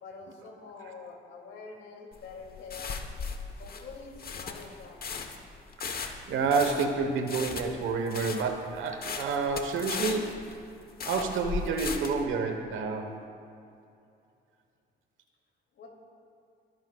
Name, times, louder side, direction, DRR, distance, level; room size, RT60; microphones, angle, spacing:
voice 1, 0.0-3.0 3.6-5.2 15.7-15.9, left 4 dB, 75° left, 0 dB, 2.8 m, -46 dB
sound 1, 2.1-12.2, left 5 dB, 50° left, 1.2 m, -37 dB
voice 2, 5.8-10.4 11.0-13.2, right 4 dB, 80° right, 5 dB, 1.3 m, -29 dB
26.0 x 10.5 x 2.4 m, 2.6 s
cardioid pair, 90°, 20 cm